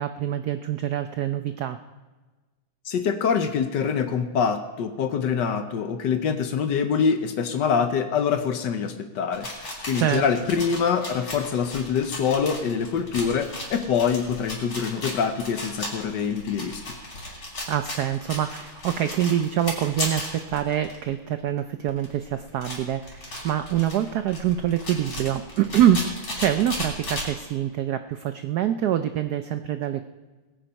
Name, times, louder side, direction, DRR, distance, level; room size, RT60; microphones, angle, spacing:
voice 1, 0.0-1.8 9.9-10.2 17.7-30.1, right 10 dB, 75° right, 10 dB, 0.9 m, -25 dB
voice 2, 2.9-9.5 9.9-16.9, left 6 dB, 65° left, 8 dB, 1.4 m, -25 dB
sound 1, 9.3-21.1 21.6-21.7 21.9-27.3, left 1 dB, 45° left, 4.2 m, -35 dB
20.5 x 8.9 x 5.3 m, 1.2 s
omnidirectional pair, 2.3 m